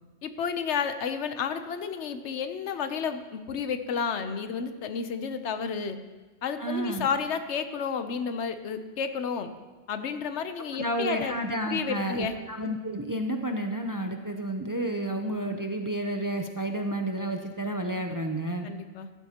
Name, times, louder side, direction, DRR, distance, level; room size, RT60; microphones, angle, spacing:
voice 1, 0.2-6.0 6.4-9.5 9.9-11.4 11.7-12.3 18.6-19.1, left 6 dB, 85° left, 9 dB, 1.0 m, -31 dB
voice 2, 6.6-7.1 10.7-18.7, right 1 dB, 25° right, 4 dB, 0.5 m, -31 dB
14.5 x 12.0 x 2.9 m, 1.3 s
omnidirectional pair, 1.1 m